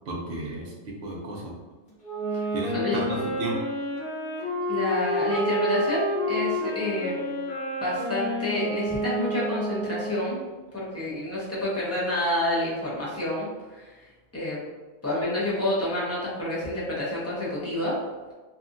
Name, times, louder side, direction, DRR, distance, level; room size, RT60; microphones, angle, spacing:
voice 1, 0.1-1.5 2.5-3.6, right 2 dB, 60° right, -2 dB, 0.8 m, -33 dB
Wind instrument woodwind instrument, 2.0-10.3, equal, 50° left, 1.0 m, -29 dB
voice 2, 2.7-3.3 4.7-7.2 7.8-10.5 10.7-14.0 14.3-14.6 15.0-18.0, left 1 dB, 15° left, -7 dB, 0.6 m, -28 dB
2.7 x 2.4 x 2.5 m, 1.2 s
omnidirectional pair, 1.2 m